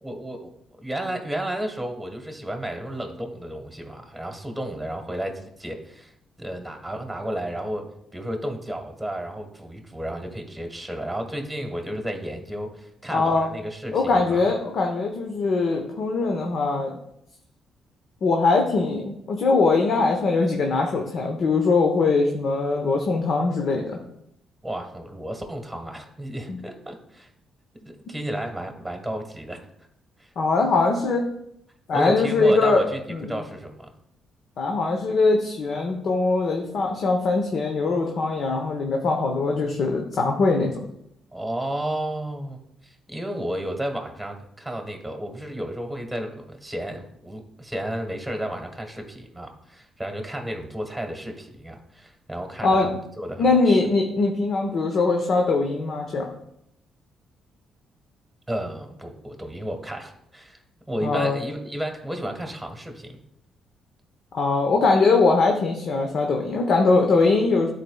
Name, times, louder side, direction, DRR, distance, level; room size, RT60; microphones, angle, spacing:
voice 1, 0.0-6.1 6.4-14.5 24.6-27.3 27.8-29.7 30.2-30.3 31.9-33.0 33.3-33.9 41.3-53.8 58.5-60.6 60.9-63.2, right 1 dB, 5° right, 3 dB, 1.3 m, -32 dB
voice 2, 13.1-13.5 13.9-16.9 18.2-24.0 26.5-26.6 30.4-31.3 31.9-32.8 33.1-33.4 34.6-40.8 52.6-52.9 53.4-56.3 61.0-61.4 64.3-67.7, left 3 dB, 60° left, 2 dB, 0.9 m, -21 dB
11.5 x 4.2 x 2.3 m, 0.76 s
cardioid pair, 90°, 0 cm